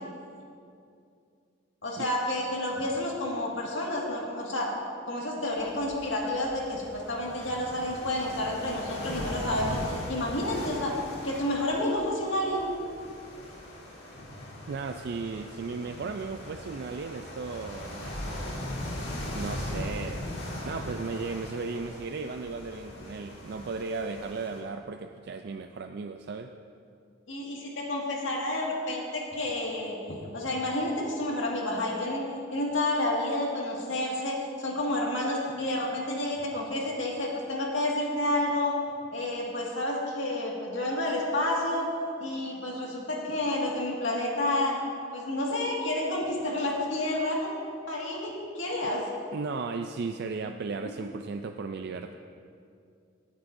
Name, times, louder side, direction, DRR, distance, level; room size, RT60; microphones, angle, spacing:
voice 1, 1.8-4.7 5.1-10.9 11.2-12.7 27.3-30.0 30.3-32.2 32.5-38.8 39.1-41.9 42.2-44.8 45.1-47.5 47.9-49.1, left 1 dB, 75° left, -2 dB, 1.9 m, -30 dB
sound 1, 5.5-24.6, left 1 dB, 55° left, 2.4 m, -39 dB
voice 2, 14.7-18.1 19.3-20.3 20.6-26.5 48.8-48.9 49.3-52.2, right 4 dB, 55° right, 6 dB, 0.4 m, -35 dB
18.0 x 9.5 x 2.6 m, 2.4 s
head